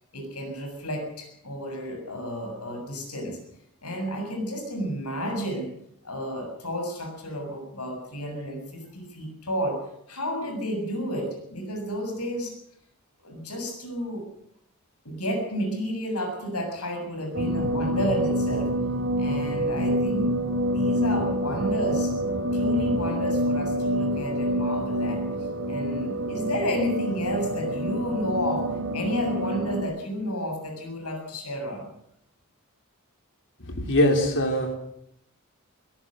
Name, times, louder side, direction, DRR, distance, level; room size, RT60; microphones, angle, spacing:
voice 1, 0.1-3.4 3.8-5.7 6.0-9.8 10.1-12.5 13.2-14.2 15.0-18.7 19.2-20.4 20.7-22.1 22.5-25.2 25.7-31.9, equal, 85° left, 4 dB, 7.4 m, -31 dB
sound 1, 17.3-29.8, equal, 60° right, 4.5 m, -27 dB
voice 2, 33.6-34.8, left 1 dB, 60° left, 4 dB, 3.8 m, -22 dB
23.0 x 17.5 x 6.6 m, 0.74 s
head